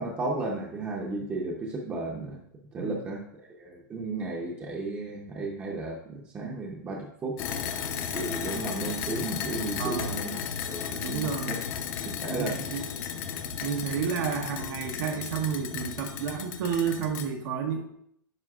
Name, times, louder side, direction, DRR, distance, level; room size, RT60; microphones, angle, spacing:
voice 1, 0.0-2.4 2.7-3.3 3.6-7.4 8.1-10.3 10.6-11.7 12.2-12.8, right 2 dB, 15° right, -2 dB, 0.7 m, -34 dB
sound 1, 7.4-17.3, left 7 dB, 35° left, 0.6 m, -34 dB
voice 2, 9.8-10.2 11.0-11.6 12.3-12.9 13.6-17.8, right 6 dB, 70° right, 2 dB, 0.9 m, -31 dB
9.6 x 5.1 x 2.4 m, 0.70 s
supercardioid pair, 150°, 11 cm